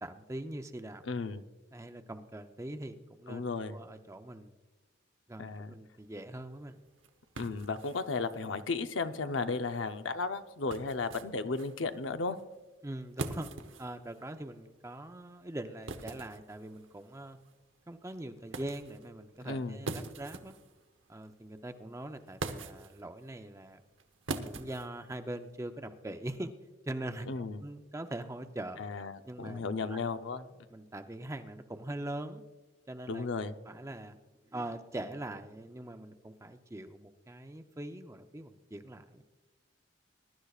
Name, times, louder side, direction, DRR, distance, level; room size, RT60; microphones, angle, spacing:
voice 1, 0.0-1.0 1.7-4.5 5.3-6.8 12.8-13.5 13.8-17.4 17.9-20.5 21.1-23.8 24.4-26.5 26.9-27.3 27.6-28.9 29.2-30.0 30.7-32.4 32.9-33.3 33.7-34.2 34.4-39.2, right 1 dB, 15° right, 7 dB, 0.6 m, -42 dB
voice 2, 1.0-1.4 3.3-3.8 5.4-5.7 7.4-12.4 19.4-19.8 27.2-27.6 28.8-30.4 33.1-33.5, left 4 dB, 85° left, 9 dB, 0.7 m, -34 dB
sound 1, 6.0-25.6, right 3 dB, 90° right, 0.9 m, -46 dB
22.0 x 11.5 x 2.4 m, 1.2 s
head